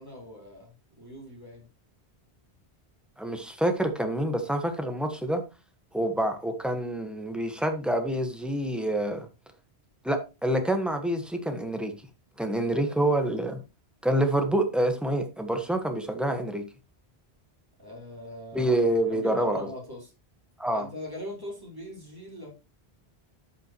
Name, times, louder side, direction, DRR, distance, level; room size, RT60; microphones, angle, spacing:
voice 1, 0.0-1.7 12.8-13.2 17.8-20.1 20.7-22.5, left 1 dB, 20° right, -2 dB, 4.1 m, -41 dB
voice 2, 3.2-5.4 5.9-9.3 10.0-11.9 12.4-13.6 14.0-16.6 18.5-19.7 20.6-20.8, right 1 dB, ahead, 5 dB, 1.3 m, -27 dB
13.0 x 5.7 x 3.0 m, 0.28 s
omnidirectional pair, 1.1 m